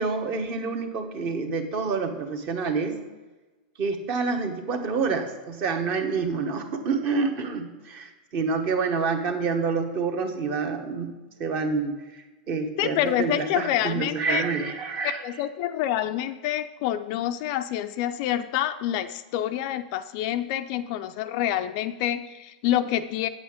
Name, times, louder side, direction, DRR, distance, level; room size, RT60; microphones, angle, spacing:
voice 1, 0.0-3.0 3.8-11.1 11.4-15.2, right 4 dB, 35° right, 6 dB, 1.1 m, -28 dB
voice 2, 12.8-14.5 15.0-23.3, left 12 dB, 40° left, 9 dB, 0.4 m, -27 dB
8.6 x 7.9 x 5.0 m, 1.2 s
supercardioid pair, 165°, 5 cm